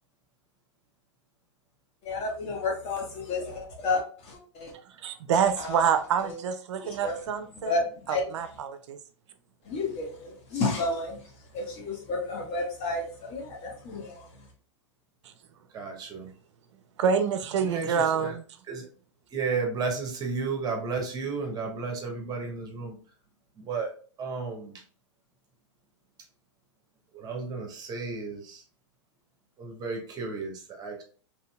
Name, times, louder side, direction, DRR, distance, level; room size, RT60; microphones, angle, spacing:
voice 1, 2.0-4.7 5.6-5.9 6.2-6.4 6.8-7.1 7.6-8.3 9.6-11.2 11.5-14.3, left 3 dB, 40° left, 1.1 m, -31 dB
voice 2, 4.7-7.8 8.1-9.0 17.0-18.4, right 7 dB, 70° right, 0.4 m, -27 dB
voice 3, 15.7-16.3 17.6-18.3 18.7-18.9 19.3-23.0 23.6-23.9 24.2-24.7 27.1-28.6 29.6-31.0, right 4 dB, 25° right, 0.9 m, -33 dB
3.0 x 2.7 x 2.3 m
hypercardioid pair, 110°, 16 cm